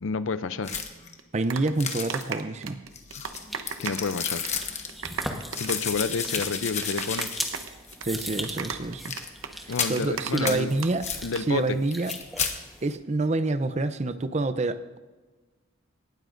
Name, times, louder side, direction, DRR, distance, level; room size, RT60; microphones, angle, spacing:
voice 1, 0.0-0.8 3.8-4.4 5.6-7.3 9.7-10.7 11.2-11.8, left 4 dB, 70° left, 13 dB, 0.5 m, -29 dB
sound 1, 0.6-1.1 1.8-2.4 2.9-4.9 5.5-7.6 7.9-8.0 9.0-9.3 9.7-10.0 10.4-10.6 11.0-11.2 11.9-12.5, left 7 dB, 35° left, 1.1 m, -32 dB
sound 2, 1.2-4.1 4.4-4.6 4.9-10.9 11.2-11.4, right 6 dB, 90° right, 0.9 m, -35 dB
voice 2, 1.3-2.8 8.0-9.1 9.6-11.0 11.5-12.1 12.8-15.0, right 2 dB, 35° right, 12 dB, 0.5 m, -27 dB
sound 3, 3.3-13.0, equal, ahead, 1.1 m, -40 dB
18.5 x 12.5 x 2.6 m, 1.3 s
head